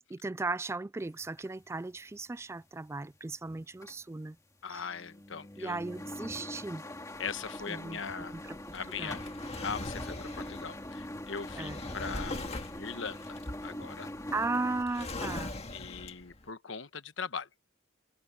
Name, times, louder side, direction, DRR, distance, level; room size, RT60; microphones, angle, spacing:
voice 1, 0.0-4.4 4.7-4.8 5.6-6.8 7.7-8.0 8.3-8.6 9.0-9.2 11.6-11.8 14.3-15.5, right 3 dB, 15° right, 0.3 m, -36 dB
sound 1, 1.0-3.5 3.7-4.2 4.5-14.8, left 1 dB, 15° left, 2.1 m, -43 dB
voice 2, 4.6-5.8 7.2-8.4 8.7-9.2 9.6-13.2 13.6-14.1 15.7-17.5, left 5 dB, 65° left, 1.1 m, -40 dB
Drawer open or close, 7.1-16.4, left 2 dB, 30° left, 1.9 m, -42 dB
head